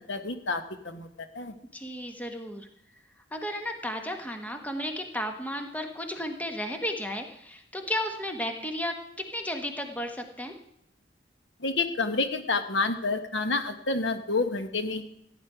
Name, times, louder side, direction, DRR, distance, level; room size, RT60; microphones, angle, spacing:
voice 1, 0.1-1.1 1.3-1.5 11.6-15.0, left 3 dB, 85° left, 8 dB, 1.3 m, -29 dB
voice 2, 1.7-2.6 3.3-8.9 9.3-10.5, equal, 10° left, 5 dB, 1.3 m, -33 dB
15.5 x 9.7 x 5.0 m, 0.79 s
head